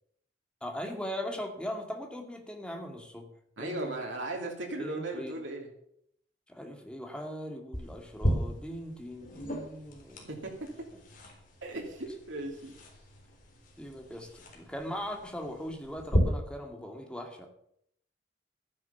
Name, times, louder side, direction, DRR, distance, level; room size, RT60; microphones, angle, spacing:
voice 1, 0.6-3.3 3.6-4.0 4.8-5.4 6.5-10.4 13.8-17.5, equal, 5° left, 3 dB, 2.2 m, -40 dB
voice 2, 3.6-5.7 10.2-10.5 11.6-12.8, right 2 dB, 90° right, 0 dB, 2.9 m, -37 dB
sound 1, 7.7-16.2, equal, 45° left, 3.9 m, -36 dB
13.5 x 10.5 x 7.1 m, 0.72 s
head